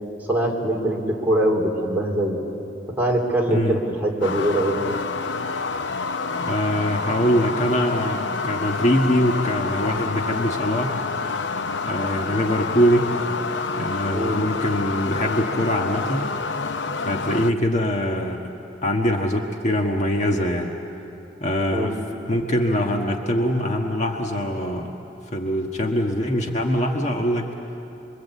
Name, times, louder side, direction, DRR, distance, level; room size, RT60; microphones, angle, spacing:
voice 1, 0.3-2.4 2.9-4.8 14.1-14.4 21.7-21.9, right 1 dB, 10° right, -2 dB, 3.3 m, -22 dB
voice 2, 3.5-3.8 5.9-6.0 6.4-11.0 11.8-13.1 13.8-16.3 17.0-18.4 18.8-20.7 21.4-21.9 22.3-24.9 25.3-27.5, equal, 40° left, 2 dB, 1.5 m, -23 dB
sound 1, 4.2-17.5, left 4 dB, 75° left, 0.7 m, -28 dB
25.5 x 24.5 x 8.3 m, 2.9 s
head